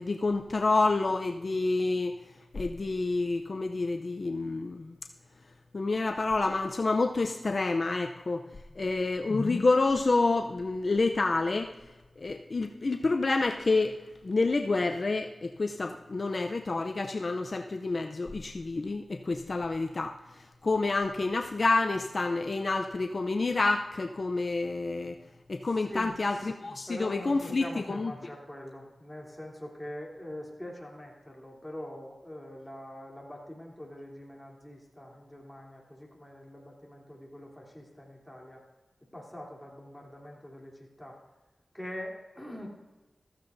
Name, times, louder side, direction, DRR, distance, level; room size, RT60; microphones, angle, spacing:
voice 1, 0.0-2.1 2.5-5.0 5.7-8.4 8.8-11.8 12.2-14.0 14.2-25.2 25.5-28.1, left 3 dB, 55° left, 5 dB, 0.6 m, -28 dB
voice 2, 25.8-26.1 26.9-38.6 39.1-41.2 41.7-42.7, left 1 dB, 5° left, -2 dB, 3.1 m, -43 dB
14.5 x 14.5 x 2.6 m, 1.1 s
wide cardioid pair, 65°, 0 cm